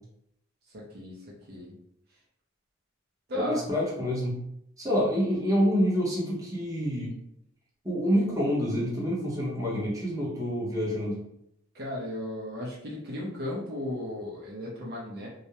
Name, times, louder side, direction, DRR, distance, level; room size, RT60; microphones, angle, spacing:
voice 1, 0.7-1.2 1.5-1.8 3.3-3.6 11.7-15.3, left 1 dB, 50° right, -4 dB, 0.6 m, -35 dB
voice 2, 3.3-4.4 4.8-7.1 7.8-11.2, equal, 15° right, -6 dB, 0.7 m, -27 dB
2.3 x 2.1 x 2.8 m, 0.78 s
head